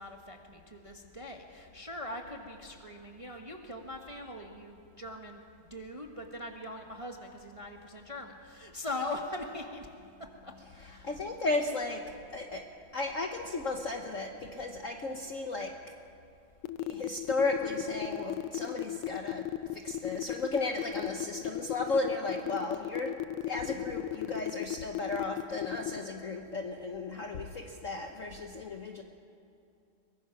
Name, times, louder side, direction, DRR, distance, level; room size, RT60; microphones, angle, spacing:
voice 1, 0.0-9.9 10.4-11.1 22.4-22.7, left 2 dB, 20° right, 2 dB, 1.1 m, -41 dB
voice 2, 11.0-15.8 16.8-19.5 19.7-23.2 23.4-29.0, left 3 dB, 50° left, 3 dB, 1.1 m, -34 dB
sound 1, 16.6-26.0, left 14 dB, 85° left, 1.6 m, -35 dB
23.0 x 21.0 x 6.0 m, 2.6 s
omnidirectional pair, 2.4 m